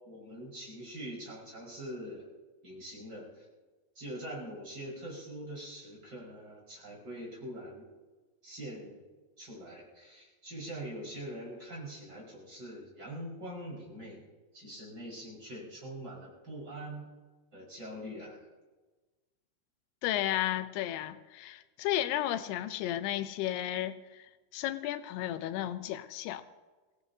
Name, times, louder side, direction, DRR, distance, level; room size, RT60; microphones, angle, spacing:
voice 1, 0.0-2.3 2.6-3.5 4.0-7.8 8.4-9.0 9.4-14.2 14.5-17.1 17.5-18.4, right 1 dB, 25° right, -5 dB, 5.4 m, -43 dB
voice 2, 20.0-26.4, left 13 dB, 85° left, 11 dB, 2.7 m, -33 dB
24.0 x 17.5 x 2.8 m, 1.3 s
omnidirectional pair, 4.6 m